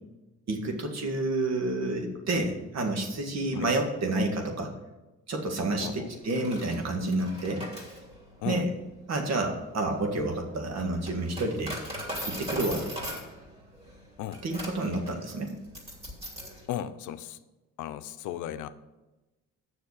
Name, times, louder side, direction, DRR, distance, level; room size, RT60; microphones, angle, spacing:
voice 1, 0.5-4.7 5.3-7.6 8.5-8.7 9.1-11.8 12.3-12.9 14.4-15.5, right 2 dB, 60° right, 3 dB, 1.8 m, -29 dB
voice 2, 5.8-6.1 8.4-8.7 14.2-14.4 16.7-17.4 17.8-18.7, left 11 dB, 85° left, 11 dB, 0.6 m, -35 dB
Coin (dropping), 6.1-16.6, equal, 20° right, 2.9 m, -40 dB
7.3 x 6.4 x 6.5 m, 1.1 s
cardioid pair, 90°, 30 cm